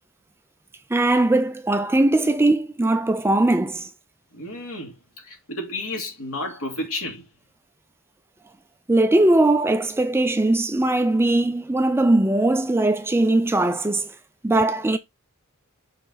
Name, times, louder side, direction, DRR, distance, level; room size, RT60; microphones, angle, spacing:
voice 1, 0.9-3.9 8.9-14.1 14.4-15.0, right 2 dB, 10° right, 0.4 m, -20 dB
voice 2, 4.3-5.0 5.2-7.3, left 1 dB, 70° left, 2.5 m, -31 dB
6.6 x 4.1 x 4.0 m
head